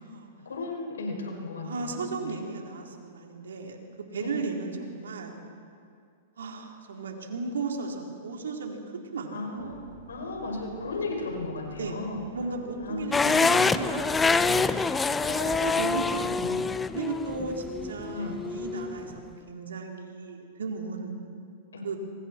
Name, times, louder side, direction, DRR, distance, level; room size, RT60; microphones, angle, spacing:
voice 1, 0.5-2.4 4.2-4.4 9.3-9.8 10.1-12.3 12.8-13.7 15.2-15.7 16.2-16.7 18.1-18.3 21.7-21.9, left 3 dB, 85° left, 1 dB, 5.6 m, -35 dB
voice 2, 1.6-3.8 4.1-5.4 6.4-8.8 9.1-9.7 11.8-12.0 12.3-15.2 15.6-16.3 16.9-21.1 21.8-22.0, right 4 dB, 85° right, 1 dB, 3.8 m, -35 dB
sound 1, 9.6-16.4, right 4 dB, 60° right, 5.4 m, -49 dB
sound 2, 13.1-19.2, left 4 dB, 10° left, 0.7 m, -26 dB
26.5 x 24.0 x 4.5 m, 2.3 s
hypercardioid pair, 120°, 0 cm